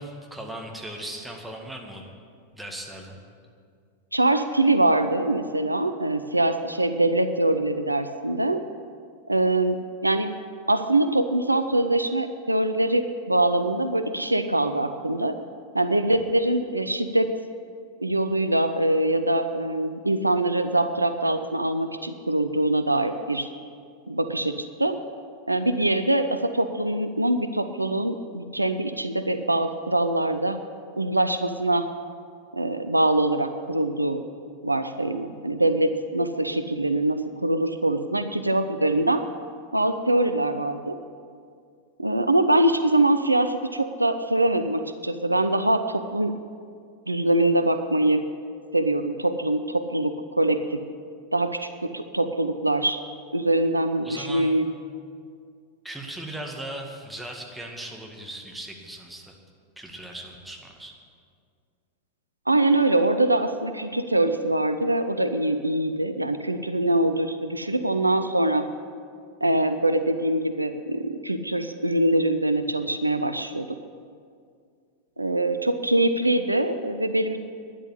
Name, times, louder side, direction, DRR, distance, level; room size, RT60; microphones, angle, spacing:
voice 1, 0.0-2.0 2.5-3.2 54.0-54.6 55.8-59.3 59.8-60.9, right 1 dB, 5° right, 0 dB, 2.0 m, -38 dB
voice 2, 4.1-8.7 9.3-10.3 10.7-15.3 15.7-17.3 18.0-23.5 24.1-25.0 25.5-30.6 31.0-31.9 32.5-34.2 34.6-39.3 39.7-41.0 42.0-46.3 47.1-48.3 48.7-50.8 51.3-53.0 53.3-54.7 62.5-68.7 69.4-73.7 75.2-77.4, right 1 dB, 85° right, 9 dB, 0.6 m, -23 dB
12.5 x 10.0 x 8.4 m, 2.2 s
figure-of-eight pair, 90°, 0 cm